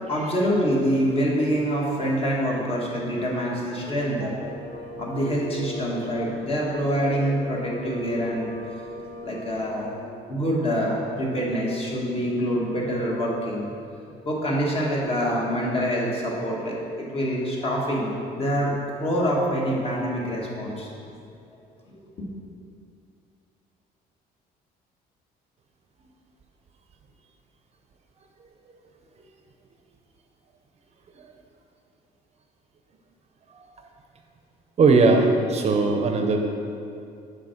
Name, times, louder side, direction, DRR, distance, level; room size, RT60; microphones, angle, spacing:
voice 1, 0.1-4.3 5.0-8.5 8.9-9.9 10.3-13.7 14.2-18.7 19.0-21.0, equal, 35° left, -3 dB, 1.7 m, -25 dB
voice 2, 3.9-4.4 31.2-31.3 33.5-33.7 34.8-36.4, right 3 dB, 40° right, 3 dB, 0.6 m, -20 dB
sound 1, 4.4-10.0, equal, 10° left, 1.7 m, -39 dB
6.1 x 4.7 x 5.8 m, 2.5 s
cardioid pair, 110°, 17 cm